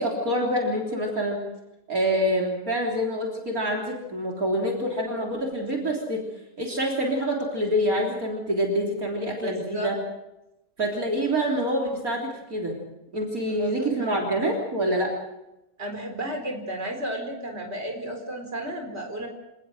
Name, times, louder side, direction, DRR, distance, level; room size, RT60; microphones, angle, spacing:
voice 1, 0.0-1.4 1.9-6.2 6.6-10.0 10.8-12.8 13.1-15.1, equal, 60° right, -1 dB, 4.0 m, -26 dB
voice 2, 9.4-9.9 13.5-14.4 15.8-19.3, right 1 dB, 40° right, 3 dB, 4.6 m, -33 dB
27.0 x 19.5 x 6.4 m, 0.90 s
omnidirectional pair, 1.7 m